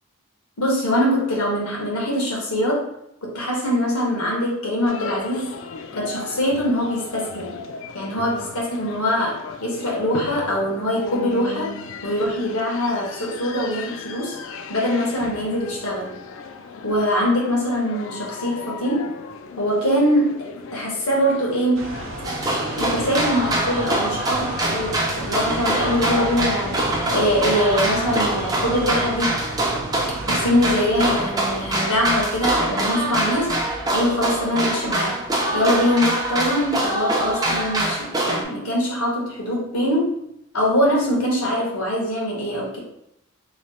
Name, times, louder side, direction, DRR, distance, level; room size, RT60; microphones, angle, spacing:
voice 1, 0.6-2.8 3.2-5.5 5.9-7.5 7.9-11.7 12.0-14.3 14.7-16.1 16.8-19.1 19.6-20.3 20.7-21.9 22.8-26.8 27.1-29.3 30.3-33.5 33.9-35.1 35.5-40.1 40.5-42.8, equal, 85° left, -2 dB, 1.3 m, -23 dB
sound 1, 4.9-23.5, left 4 dB, 65° left, 0.3 m, -36 dB
sound 2, 21.7-38.0, right 1 dB, 60° right, 0.7 m, -35 dB
sound 3, 22.2-38.4, right 1 dB, 15° right, 0.4 m, -24 dB
3.1 x 2.4 x 4.1 m, 0.78 s
head